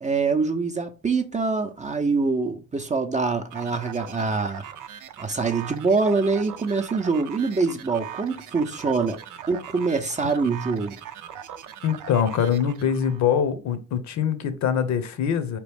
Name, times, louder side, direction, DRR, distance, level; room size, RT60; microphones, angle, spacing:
voice 1, 0.0-4.7 5.2-9.2 9.5-11.0, right 4 dB, 25° right, 0.6 m, -24 dB
sound 1, 3.5-13.2, right 9 dB, 90° right, 0.6 m, -40 dB
voice 2, 11.8-15.6, left 8 dB, 65° left, 0.8 m, -23 dB
4.1 x 3.0 x 3.4 m
cardioid pair, 90°, 30 cm